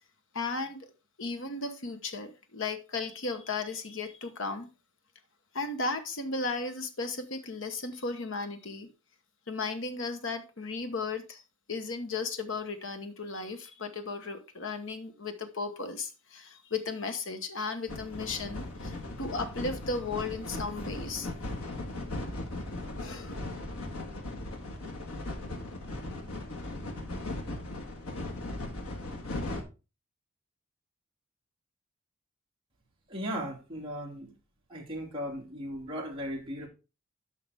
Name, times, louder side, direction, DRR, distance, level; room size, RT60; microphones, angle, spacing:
voice 1, 0.3-0.9 1.2-4.7 5.5-8.9 9.5-11.4 11.7-21.3 23.0-23.3, left 3 dB, 60° left, 1.1 m, -35 dB
sound 1, 17.9-29.6, left 2 dB, 80° left, 1.6 m, -38 dB
voice 2, 33.1-34.3 34.7-36.7, equal, 25° right, 2.7 m, -37 dB
9.4 x 5.8 x 3.5 m
head